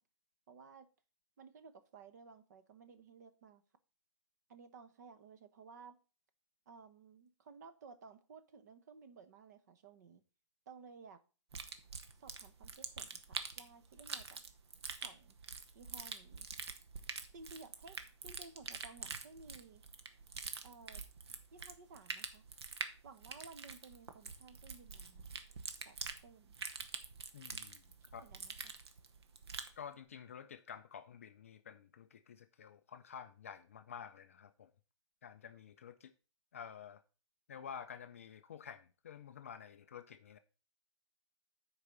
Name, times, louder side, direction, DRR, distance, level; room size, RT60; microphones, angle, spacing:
voice 1, 0.5-0.9 1.4-3.6 4.5-6.0 6.7-10.2 10.7-11.2 12.2-14.4 15.0-15.3 15.7-16.5 17.3-18.0 18.2-19.8 20.6-21.0 21.5-22.4 23.0-25.4 25.8-26.5 28.2-28.7, right 4 dB, 35° right, 0.9 m, -56 dB
sound 1, 11.5-29.8, right 5 dB, 55° right, 1.1 m, -46 dB
voice 2, 27.3-27.8 28.1-28.2 29.8-34.7 35.2-36.1 36.5-37.0 37.5-40.4, left 7 dB, 30° left, 0.3 m, -50 dB
6.6 x 4.8 x 6.5 m
hypercardioid pair, 170°, 16 cm